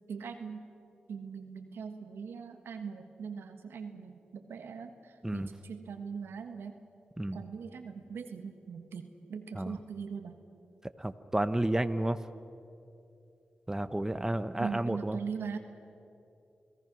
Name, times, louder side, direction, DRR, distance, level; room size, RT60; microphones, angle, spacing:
voice 1, 0.1-0.6 1.1-6.8 7.3-10.4 14.6-15.6, right 6 dB, 90° right, 6 dB, 1.4 m, -41 dB
voice 2, 11.0-12.2 13.7-15.2, right 1 dB, 15° right, 11 dB, 0.9 m, -31 dB
28.5 x 17.5 x 6.1 m, 2.7 s
cardioid pair, 45°, 4 cm